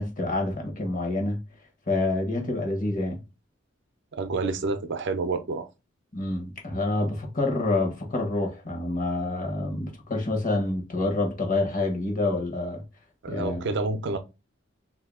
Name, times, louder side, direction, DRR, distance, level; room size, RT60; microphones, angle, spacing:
voice 1, 0.0-1.4 1.9-3.2 6.1-12.8 13.3-13.6, left 2 dB, 45° left, 1.1 m, -27 dB
voice 2, 4.1-5.7 13.2-14.2, right 3 dB, 60° right, 0.5 m, -28 dB
2.8 x 2.7 x 3.5 m
head